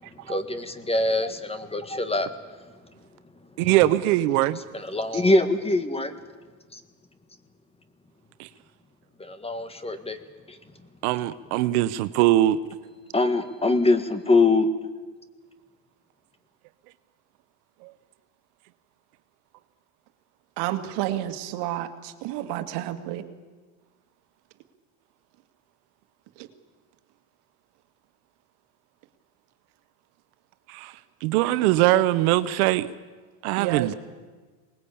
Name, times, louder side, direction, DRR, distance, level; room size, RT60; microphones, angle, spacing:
voice 1, 0.1-2.3 3.6-3.7 4.7-6.1 6.7-6.8 9.2-10.2 10.5-10.6 13.1-14.7, left 2 dB, 15° left, 1.7 m, -23 dB
voice 2, 3.6-4.6 8.4-8.5 11.0-12.6 17.8-17.9 30.7-30.9 31.2-32.9 33.4-33.9, right 15 dB, 80° right, 0.9 m, -21 dB
voice 3, 20.6-23.2 33.6-33.9, right 13 dB, 65° right, 2.1 m, -30 dB
23.5 x 20.0 x 8.6 m
supercardioid pair, 115°, 43 cm